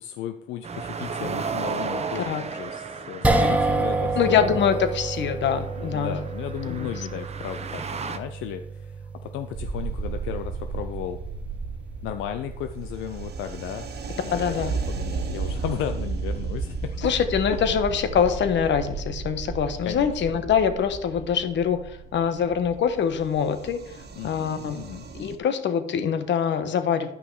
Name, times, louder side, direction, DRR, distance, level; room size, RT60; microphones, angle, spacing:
voice 1, 0.0-4.9 5.9-11.2 12.0-13.9 14.2-14.6 14.9-17.1 19.8-20.1 24.2-25.1, left 10 dB, 90° left, 8 dB, 0.5 m, -35 dB
sound 1, 0.6-8.2, right 5 dB, 30° right, 0.8 m, -35 dB
sound 2, 3.2-15.6, right 2 dB, 5° right, 1.0 m, -30 dB
voice 2, 4.2-6.2 6.7-7.1 14.3-14.7 17.0-24.0 24.2-24.8 25.2-27.1, left 7 dB, 65° left, 9 dB, 1.1 m, -24 dB
sound 3, 9.5-25.4, right 4 dB, 55° right, 1.4 m, -34 dB
10.5 x 5.7 x 4.7 m, 0.79 s
cardioid pair, 90°, 20 cm